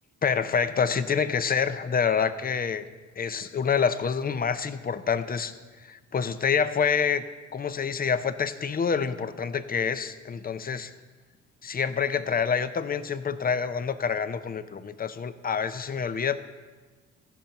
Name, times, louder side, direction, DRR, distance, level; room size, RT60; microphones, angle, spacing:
voice 1, 0.2-2.8 3.2-5.5 5.8-7.2 7.5-10.9 11.6-16.4, left 6 dB, 30° left, 12 dB, 0.6 m, -27 dB
14.5 x 5.4 x 5.7 m, 1.3 s
cardioid pair, 90°, 30 cm